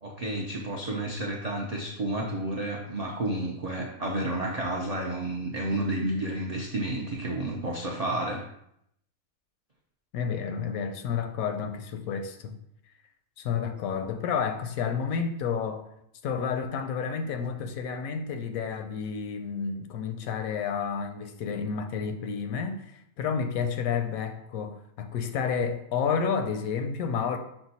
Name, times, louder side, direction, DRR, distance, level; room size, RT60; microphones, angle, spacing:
voice 1, 0.0-8.4, right 1 dB, 75° right, 0.3 m, -31 dB
voice 2, 10.1-12.6 13.4-15.8 16.2-22.8 23.2-27.4, left 6 dB, 85° left, 1.0 m, -30 dB
5.8 x 2.2 x 4.0 m
omnidirectional pair, 1.4 m